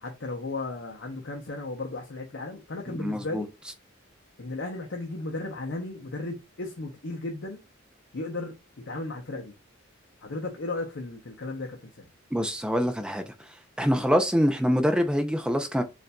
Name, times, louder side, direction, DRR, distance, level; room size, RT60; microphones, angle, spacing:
voice 1, 0.0-3.5 4.4-7.6 8.1-8.5 8.9-9.5 10.2-12.1, left 2 dB, 60° left, 0.7 m, -35 dB
voice 2, 2.9-3.4 12.3-13.2 13.8-15.8, equal, 5° right, 0.4 m, -25 dB
6.7 x 2.5 x 2.2 m
head